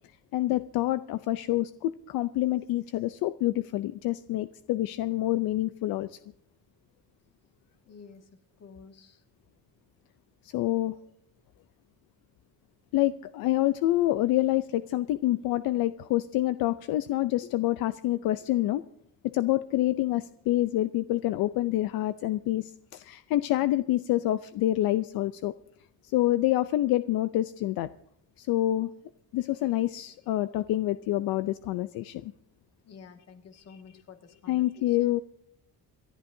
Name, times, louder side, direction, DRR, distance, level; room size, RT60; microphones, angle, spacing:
voice 1, 0.3-6.2 10.4-11.0 12.9-18.8 19.3-25.5 26.0-27.9 28.4-28.9 29.3-32.3 33.7-33.8 34.5-35.2, left 15 dB, 75° left, 13 dB, 0.6 m, -27 dB
voice 2, 7.9-8.3 8.6-9.2 17.4-17.5 32.8-35.0, left 6 dB, 45° left, 5 dB, 1.9 m, -50 dB
28.0 x 11.5 x 2.7 m, 0.77 s
cardioid pair, 145°, 36 cm